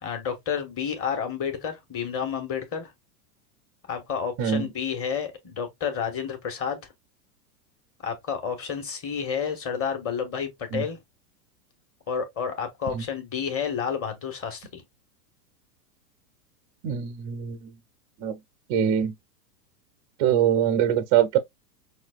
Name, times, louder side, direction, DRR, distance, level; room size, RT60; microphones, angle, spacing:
voice 1, 0.0-2.9 3.9-6.8 8.0-11.0 12.1-14.8, left 7 dB, 30° left, 1.5 m, -30 dB
voice 2, 16.8-17.7 18.2-18.4 18.7-19.1 20.2-21.4, right 9 dB, 20° right, 0.3 m, -23 dB
5.8 x 2.6 x 2.3 m
hypercardioid pair, 125°, 49 cm